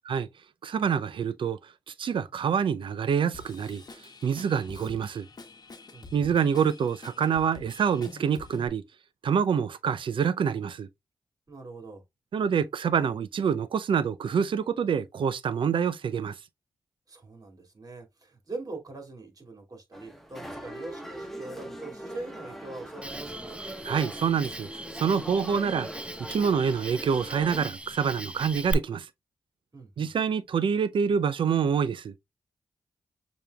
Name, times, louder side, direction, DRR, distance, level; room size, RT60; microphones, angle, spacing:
voice 1, 0.6-1.6 2.0-3.8 4.2-5.3 6.1-8.8 9.2-10.9 12.3-16.3 23.9-24.7 25.0-25.9 26.2-29.1 30.0-32.1, right 7 dB, 75° right, 0.5 m, -26 dB
Drum kit / Drum, 3.3-8.7, left 3 dB, 50° left, 1.0 m, -47 dB
voice 2, 5.9-6.3 11.5-12.0 17.1-23.6 29.7-30.1, right 3 dB, 45° right, 2.3 m, -42 dB
sound 1, 19.9-27.7, equal, 5° left, 1.2 m, -41 dB
Cricket, 23.0-28.7, right 1 dB, 15° right, 0.5 m, -39 dB
6.7 x 3.0 x 2.3 m
cardioid pair, 50°, 9 cm